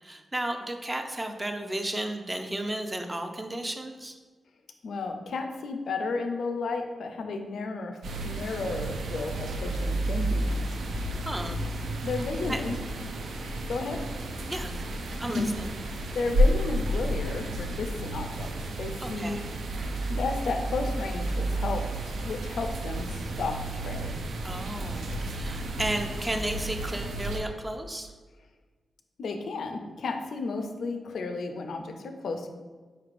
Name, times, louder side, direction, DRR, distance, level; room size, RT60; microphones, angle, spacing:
voice 1, 0.0-4.1 11.3-11.6 12.5-12.6 14.5-14.8 15.2-15.7 19.0-19.4 24.4-28.1, right 1 dB, 20° right, 5 dB, 0.4 m, -33 dB
voice 2, 4.8-8.0 8.2-11.1 11.4-11.5 12.0-12.8 13.7-14.0 15.2-15.5 16.1-19.4 20.1-24.1 29.2-32.5, left 3 dB, 80° left, 5 dB, 0.4 m, -33 dB
sound 1, 8.0-27.4, right 1 dB, 85° right, 0.4 m, -31 dB
4.3 x 3.2 x 2.5 m, 1.4 s
cardioid pair, 65°, 0 cm